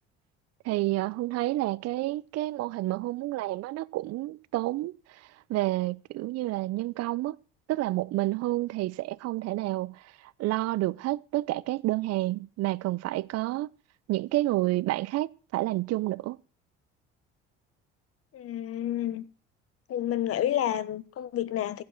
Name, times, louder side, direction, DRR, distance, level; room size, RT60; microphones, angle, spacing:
voice 1, 0.6-7.4 7.7-10.1 10.4-13.7 14.1-16.4, right 17 dB, 60° right, 0.6 m, -29 dB
voice 2, 18.3-19.2 19.9-21.8, left 11 dB, 50° left, 1.2 m, -29 dB
15.5 x 5.4 x 7.7 m
hypercardioid pair, 70°, 29 cm